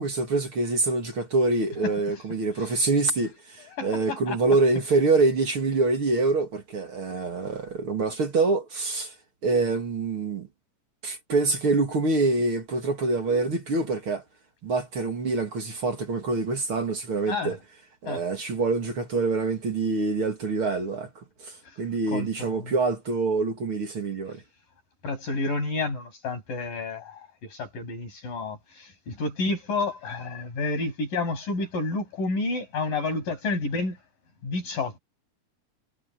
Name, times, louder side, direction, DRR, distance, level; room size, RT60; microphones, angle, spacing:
voice 1, 0.0-9.1 9.4-10.5 11.0-14.2 14.6-17.6 18.0-21.1 21.4-24.4, right 3 dB, 40° right, 2.8 m, -25 dB
voice 2, 3.8-4.4 17.3-17.6 18.1-18.2 22.1-22.7 25.0-34.0 34.4-35.0, left 3 dB, 85° left, 9.6 m, -30 dB
omnidirectional pair, 3.8 m